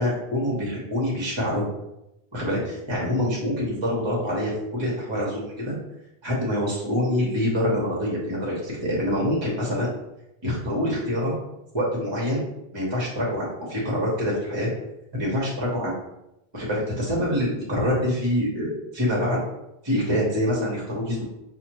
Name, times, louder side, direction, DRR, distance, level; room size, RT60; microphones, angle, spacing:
voice 1, 0.0-1.7 2.3-5.7 6.2-9.9 10.4-11.3 11.7-12.4 12.7-14.7 15.1-15.9 16.5-19.4 19.8-21.2, equal, 30° right, -4 dB, 0.9 m, -25 dB
5.6 x 2.2 x 2.9 m, 0.87 s
omnidirectional pair, 1.0 m